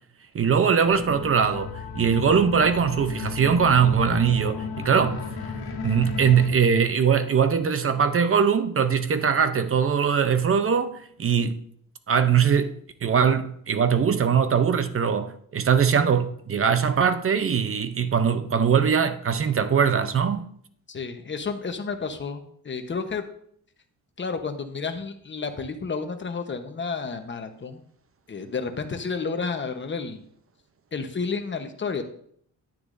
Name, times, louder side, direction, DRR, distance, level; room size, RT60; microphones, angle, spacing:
voice 1, 0.3-5.2 5.8-11.6 12.1-12.8 13.0-20.5, right 7 dB, 35° right, 0.7 m, -21 dB
sound 1, 0.8-6.5, left 5 dB, 90° left, 1.5 m, -34 dB
voice 2, 20.9-23.2 24.2-27.8 28.3-30.2 30.9-32.0, left 5 dB, 30° left, 1.0 m, -31 dB
10.5 x 9.4 x 2.6 m
cardioid pair, 120°, 36 cm